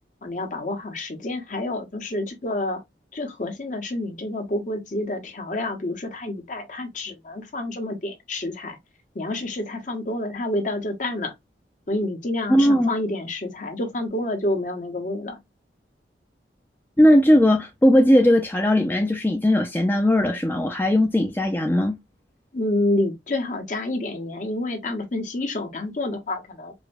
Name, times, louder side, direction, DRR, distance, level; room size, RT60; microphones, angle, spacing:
voice 1, 0.2-2.8 3.1-8.8 9.1-11.3 11.9-15.4 22.5-26.7, left 2 dB, 45° left, 0.9 m, -28 dB
voice 2, 12.5-12.9 17.0-21.9, left 1 dB, 10° left, 0.5 m, -18 dB
4.8 x 2.2 x 2.6 m
head